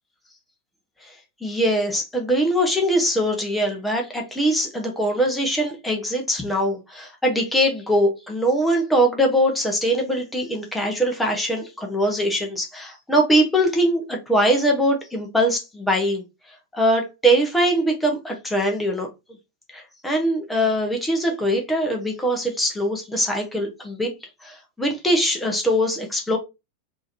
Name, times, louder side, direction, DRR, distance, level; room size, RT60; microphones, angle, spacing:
voice 1, 1.4-16.2 16.7-19.1 19.7-24.1 24.4-26.4, equal, 5° left, 1.0 m, -22 dB
3.6 x 2.9 x 2.6 m
figure-of-eight pair, 90°, 0 cm